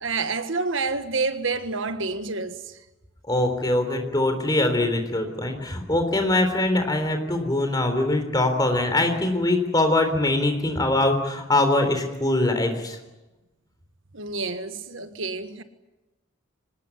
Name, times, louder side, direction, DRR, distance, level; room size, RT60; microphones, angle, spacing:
voice 1, 0.0-2.6 14.1-15.6, right 3 dB, 65° right, 1.5 m, -28 dB
voice 2, 3.3-13.0, left 2 dB, 20° left, 3.7 m, -23 dB
24.5 x 19.5 x 9.8 m
head